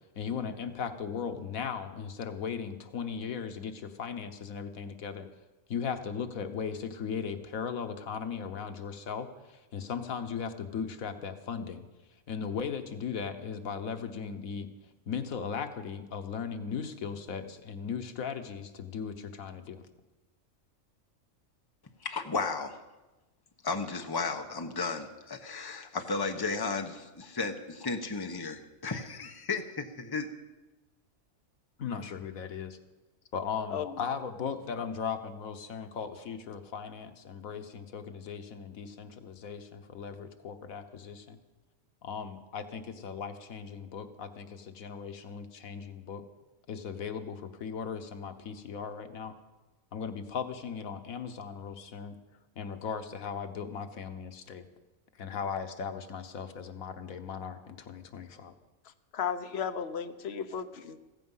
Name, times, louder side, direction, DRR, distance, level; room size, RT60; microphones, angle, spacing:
voice 1, 0.2-5.3 5.7-11.8 12.3-14.7 15.1-19.8 31.8-32.8 33.3-41.4 42.0-46.2 46.7-49.3 49.9-52.1 52.6-54.7 55.2-58.5, left 6 dB, 90° left, 8 dB, 1.5 m, -37 dB
voice 2, 22.0-22.8 23.6-30.3, left 4 dB, 20° left, 6 dB, 1.0 m, -34 dB
voice 3, 59.1-61.0, left 7 dB, 55° left, 9 dB, 1.1 m, -34 dB
15.5 x 15.0 x 5.6 m, 1.1 s
omnidirectional pair, 1.4 m